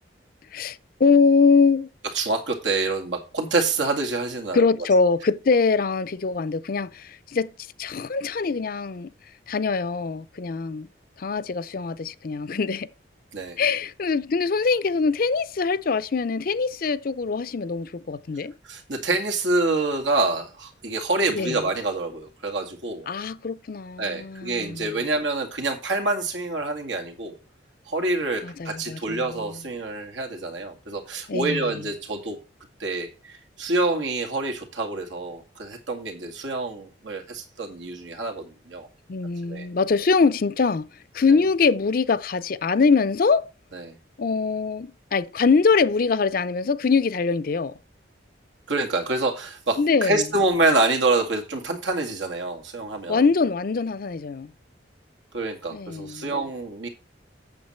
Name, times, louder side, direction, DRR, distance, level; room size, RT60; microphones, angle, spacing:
voice 1, 0.5-1.9 4.5-7.5 7.8-9.1 9.5-10.9 11.2-12.9 13.6-18.5 21.3-21.6 23.1-24.9 28.4-29.2 31.3-31.8 39.1-40.9 41.1-43.5 44.2-47.7 49.8-50.2 53.1-54.5 55.7-56.3, left 4 dB, 50° left, 0.5 m, -23 dB
voice 2, 2.1-4.7 13.3-13.6 18.6-23.1 24.0-27.4 27.9-32.4 32.8-38.9 39.5-39.7 43.7-43.9 48.7-53.2 55.3-56.9, right 2 dB, 85° right, 2.2 m, -26 dB
8.7 x 7.3 x 4.3 m
head